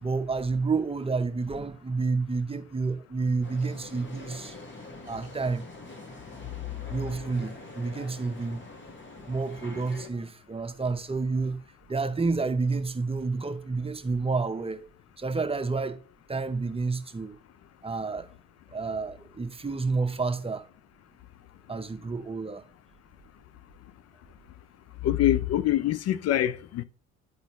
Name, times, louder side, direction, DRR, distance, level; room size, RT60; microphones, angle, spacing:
voice 1, 0.0-4.6 5.1-5.6 6.9-8.6 9.3-11.6 11.9-14.8 15.2-16.0 16.3-17.4 17.8-18.3 18.7-20.6 21.7-22.6, right 4 dB, 20° right, 0.8 m, -29 dB
sound 1, 3.4-10.1, left 2 dB, 40° left, 1.7 m, -45 dB
voice 2, 25.0-26.8, left 12 dB, 55° left, 0.4 m, -24 dB
11.5 x 4.1 x 3.0 m
supercardioid pair, 60°, 30 cm